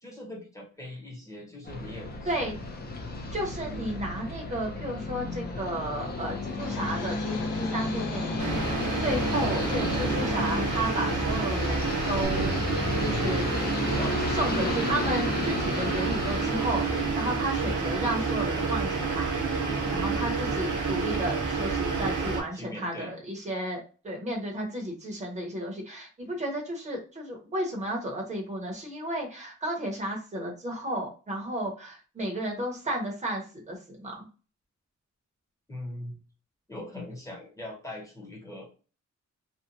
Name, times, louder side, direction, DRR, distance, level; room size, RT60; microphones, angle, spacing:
voice 1, 0.0-2.6 3.5-4.0 9.2-9.4 13.9-14.5 19.6-20.2 22.5-23.1 35.7-36.2 36.7-38.7, left 1 dB, 10° left, -3 dB, 0.8 m, -41 dB
sound 1, 1.6-21.3, left 2 dB, 35° left, 0.4 m, -33 dB
voice 2, 3.3-13.4 14.3-19.3 19.9-34.3, right 1 dB, 25° right, 0 dB, 0.7 m, -33 dB
Domestic sounds home sounds, 6.6-12.3, left 5 dB, 80° left, 0.6 m, -41 dB
sound 2, 8.4-22.4, right 4 dB, 90° right, 0.7 m, -29 dB
2.8 x 2.1 x 2.5 m, 0.36 s
wide cardioid pair, 170°, 30 cm